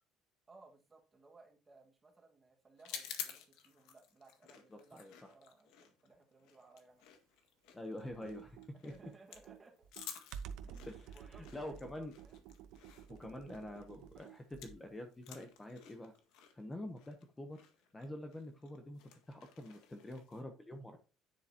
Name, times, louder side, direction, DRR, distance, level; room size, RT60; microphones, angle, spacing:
voice 1, 0.5-7.0 8.1-8.2 8.7-9.9 10.6-12.4 16.7-16.8, right 3 dB, 15° right, 2 dB, 1.7 m, -62 dB
sound 1, 2.8-14.9 15.1-20.4, left 9 dB, 80° left, 1.8 m, -52 dB
voice 2, 4.7-5.1 7.7-8.6 8.8-9.1 10.9-11.0 11.2-12.1 13.1-16.1 16.5-17.6 17.9-19.0 19.3-21.0, left 1 dB, 10° left, 5 dB, 0.9 m, -46 dB
Computer keyboard, 8.1-14.9, right 8 dB, 75° right, 0.9 m, -51 dB
10.0 x 7.7 x 2.9 m, 0.32 s
cardioid pair, 170°, 0 cm